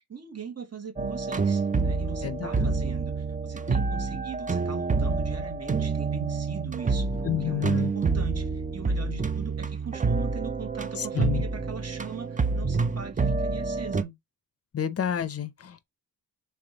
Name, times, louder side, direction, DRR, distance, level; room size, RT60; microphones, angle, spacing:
voice 1, 0.0-7.1 7.4-14.2, right 6 dB, 35° right, 1.1 m, -40 dB
sound 1, 1.0-14.0, right 4 dB, 20° right, 0.5 m, -28 dB
voice 2, 2.2-2.7 7.2-7.9 11.0-11.4 14.7-15.8, left 9 dB, 35° left, 0.6 m, -30 dB
3.4 x 3.1 x 3.9 m
cardioid pair, 55°, 42 cm